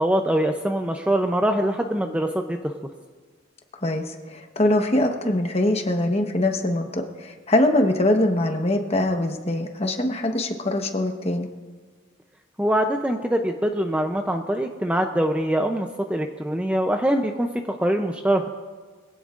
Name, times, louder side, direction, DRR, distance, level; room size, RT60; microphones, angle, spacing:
voice 1, 0.0-2.7 12.6-18.5, right 1 dB, 5° right, 4 dB, 0.5 m, -23 dB
voice 2, 3.8-11.5, left 1 dB, 30° left, 4 dB, 1.1 m, -23 dB
23.0 x 16.5 x 2.5 m, 1.5 s
head